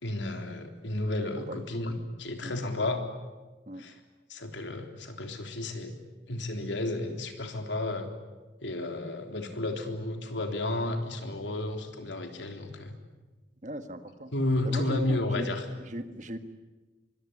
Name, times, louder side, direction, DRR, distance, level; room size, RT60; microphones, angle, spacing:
voice 1, 0.0-1.9 2.2-3.0 3.8-3.9 4.3-6.0 6.3-8.1 8.6-12.9 14.3-15.6, left 2 dB, 90° left, 5 dB, 3.6 m, -32 dB
voice 2, 1.4-1.7 2.4-2.6 3.7-3.9 13.6-14.3 14.6-15.5 15.8-16.4, right 1 dB, 40° right, 9 dB, 1.7 m, -39 dB
24.5 x 23.0 x 10.0 m, 1.2 s
head